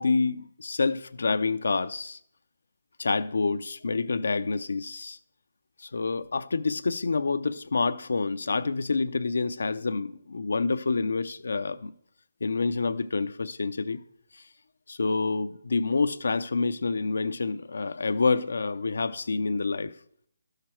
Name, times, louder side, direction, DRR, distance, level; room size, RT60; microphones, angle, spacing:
voice 1, 0.0-2.2 3.0-5.2 5.8-11.9 12.4-14.0 14.9-19.9, left 4 dB, 80° left, 0.5 m, -27 dB
12.0 x 6.5 x 4.4 m
hypercardioid pair, 170°, 0 cm